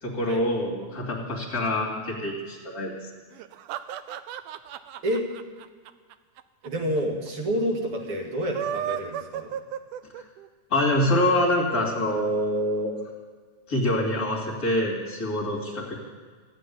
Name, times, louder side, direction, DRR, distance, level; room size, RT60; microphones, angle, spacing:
voice 1, 0.0-2.9 10.7-12.9 13.7-16.0, left 1 dB, 30° left, -2 dB, 2.8 m, -25 dB
sound 1, 3.3-6.7 7.0-7.1 7.3-7.4 8.3-10.5, right 10 dB, 85° right, 2.1 m, -34 dB
voice 2, 6.6-9.5, equal, 45° right, 1 dB, 2.8 m, -28 dB
16.0 x 8.3 x 9.5 m, 1.5 s
omnidirectional pair, 3.6 m